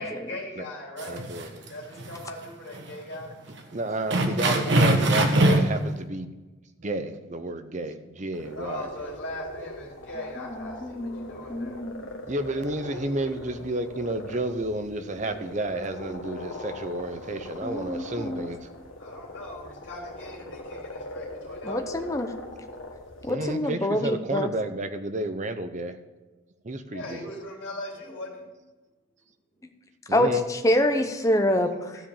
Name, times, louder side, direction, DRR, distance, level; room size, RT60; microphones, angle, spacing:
voice 1, 0.0-1.3 1.7-3.3 8.5-11.7 19.0-22.0 26.9-28.5, left 1 dB, 55° left, -3 dB, 3.4 m, -39 dB
sound 1, 1.0-1.7 2.0-2.1 2.7-2.8 3.2-3.3 4.1-5.8, right 1 dB, 55° right, 1.1 m, -21 dB
voice 2, 1.1-1.5 3.7-6.4 6.8-8.9 12.3-18.7 23.3-26.0 26.6-27.2 30.1-30.4, right 1 dB, 35° right, 9 dB, 0.6 m, -31 dB
sound 2, 8.3-23.3, left 1 dB, 70° left, 1.5 m, -41 dB
voice 3, 10.4-12.1 17.6-18.5 21.6-22.3 23.2-24.5 30.1-32.0, left 1 dB, 15° left, 6 dB, 0.6 m, -26 dB
13.0 x 5.0 x 7.1 m, 1.2 s
head